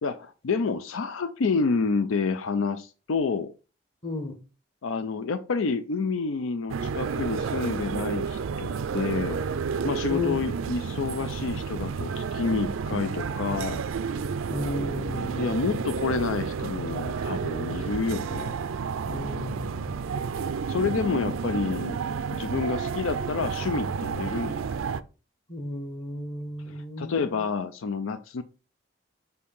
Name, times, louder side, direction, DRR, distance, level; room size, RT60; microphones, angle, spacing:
voice 1, 0.0-3.5 4.8-9.4 9.8-13.8 15.4-18.6 20.5-22.0 22.3-24.8 27.0-28.4, left 4 dB, 80° left, 0.5 m, -29 dB
voice 2, 4.0-4.3 10.1-10.3 14.5-15.8 19.0-20.0 25.5-27.3, left 2 dB, 30° left, 1.3 m, -34 dB
sound 1, 6.7-25.0, right 5 dB, 85° right, 0.4 m, -31 dB
6.4 x 2.8 x 5.4 m
head